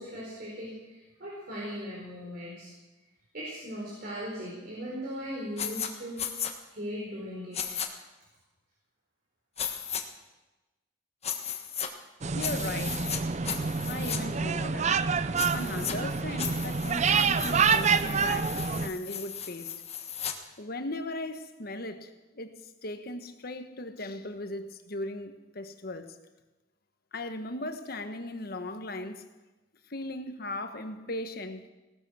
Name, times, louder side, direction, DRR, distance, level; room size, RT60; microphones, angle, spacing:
voice 1, 0.0-2.7 3.3-6.2 6.7-7.6, equal, 55° right, -6 dB, 4.7 m, -38 dB
sound 1, 5.6-5.9 6.2-6.5 7.5-7.9 9.6-10.0 11.2-11.9 12.4-13.2 13.4-14.2 15.4-15.9 16.4-20.3, left 8 dB, 35° left, 1.4 m, -35 dB
sound 2, 12.2-18.9, right 5 dB, 35° right, 0.5 m, -27 dB
voice 2, 12.3-13.2 13.9-19.7 20.6-26.2 27.1-29.2 29.9-31.6, left 2 dB, 55° left, 8 dB, 1.3 m, -38 dB
17.5 x 12.5 x 6.3 m, 1.1 s
head